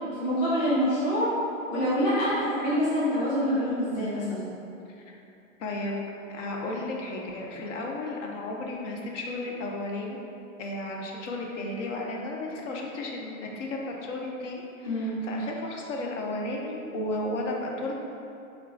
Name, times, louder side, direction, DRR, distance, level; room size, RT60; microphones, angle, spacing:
voice 1, 0.2-1.3 1.7-4.5 14.8-15.3, equal, 10° left, -9 dB, 0.3 m, -26 dB
voice 2, 5.6-6.0 6.3-10.2 10.6-18.0, left 2 dB, 65° left, -1 dB, 0.7 m, -34 dB
2.9 x 2.4 x 3.5 m, 2.7 s
hypercardioid pair, 130°, 40 cm